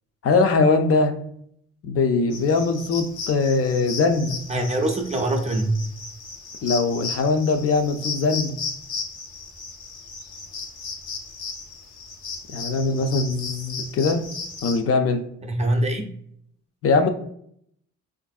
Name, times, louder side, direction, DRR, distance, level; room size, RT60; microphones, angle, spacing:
voice 1, 0.2-1.1 1.8-4.4 6.6-8.6 12.5-14.2 14.6-15.2 16.8-17.1, left 4 dB, 50° left, 6 dB, 0.4 m, -21 dB
sound 1, 2.3-14.8, left 4 dB, 80° left, 0.8 m, -35 dB
voice 2, 4.5-5.8 15.4-16.0, right 1 dB, 25° right, 3 dB, 0.5 m, -23 dB
3.4 x 2.5 x 2.3 m, 0.67 s
cardioid pair, 90°, 30 cm